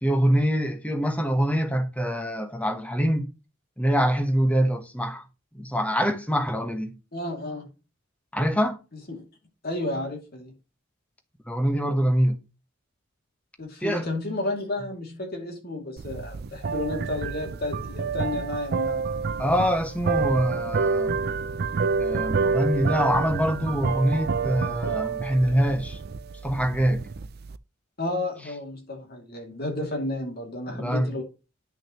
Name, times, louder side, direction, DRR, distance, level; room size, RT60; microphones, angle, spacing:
voice 1, 0.0-3.3 3.8-5.2 5.5-6.9 8.3-8.8 11.5-12.4 13.8-14.1 19.4-21.2 22.0-26.0 26.4-27.1 30.7-31.1, equal, 5° left, 1.0 m, -24 dB
voice 2, 7.1-7.7 9.1-9.2 9.6-10.5 13.6-19.2 28.0-31.2, left 2 dB, 50° left, 2.6 m, -32 dB
sound 1, 16.0-27.6, right 5 dB, 50° right, 0.4 m, -28 dB
10.5 x 6.2 x 3.0 m
head